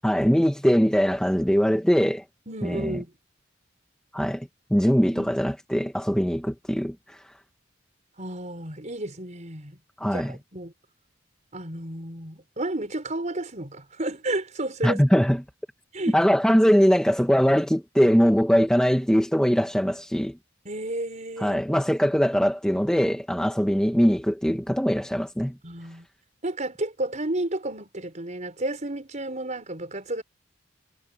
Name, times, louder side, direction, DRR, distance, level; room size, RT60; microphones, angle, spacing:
voice 1, 0.0-2.2 2.6-3.0 4.1-7.2 10.0-10.4 14.8-15.4 16.1-20.4 21.4-25.6, equal, 5° left, 1.7 m, -22 dB
voice 2, 2.5-3.1 5.1-5.4 8.2-9.8 10.1-10.7 11.5-15.0 15.9-16.2 20.7-21.6 25.6-26.1 26.4-30.2, right 1 dB, 40° right, 5.2 m, -32 dB
head